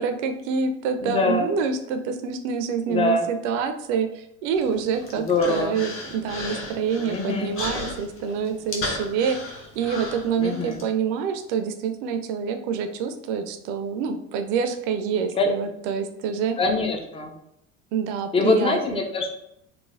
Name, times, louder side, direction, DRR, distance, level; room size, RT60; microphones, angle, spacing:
voice 1, 0.0-16.6 17.9-19.0, right 6 dB, 55° right, 7 dB, 0.4 m, -27 dB
voice 2, 1.0-1.5 2.9-3.3 5.2-5.8 7.0-7.6 10.4-10.8 15.4-15.5 16.6-17.3 18.3-19.3, left 3 dB, 15° left, 3 dB, 0.4 m, -23 dB
Human voice, 4.6-10.8, left 2 dB, 30° left, 0.8 m, -35 dB
3.1 x 2.1 x 2.4 m, 0.78 s
hypercardioid pair, 75°, 41 cm